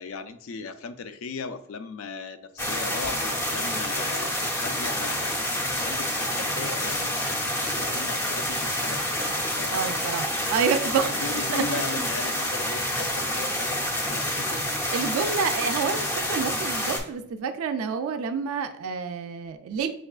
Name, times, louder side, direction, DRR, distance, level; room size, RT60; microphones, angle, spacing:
voice 1, 0.0-5.4 5.8-10.6 11.1-14.6, left 4 dB, 65° left, 11 dB, 0.3 m, -37 dB
sound 1, 2.6-17.0, left 1 dB, 10° left, 0.5 m, -28 dB
voice 2, 9.7-11.2 11.5-11.6 14.9-19.9, right 6 dB, 70° right, 8 dB, 0.3 m, -28 dB
6.1 x 2.2 x 2.3 m, 0.75 s
head